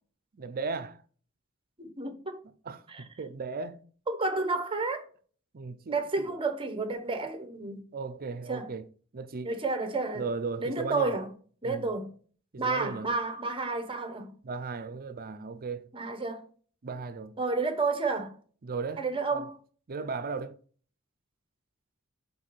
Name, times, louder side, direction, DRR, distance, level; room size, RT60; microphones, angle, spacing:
voice 1, 0.3-1.0 2.6-3.8 5.5-6.4 7.9-8.8 9.1-9.5 10.1-11.2 11.6-11.9 12.5-13.2 14.4-15.9 16.8-17.4 18.6-19.0 19.3-19.5 19.9-20.6, right 4 dB, 40° right, 0.5 m, -36 dB
voice 2, 1.8-2.4 2.9-3.0 4.1-5.1 5.9-7.8 8.5-8.7 9.4-10.3 10.6-11.3 11.6-12.1 12.6-14.3 15.9-16.4 17.4-18.3 19.0-19.6, right 3 dB, 25° right, 0.9 m, -31 dB
5.2 x 4.7 x 4.2 m
head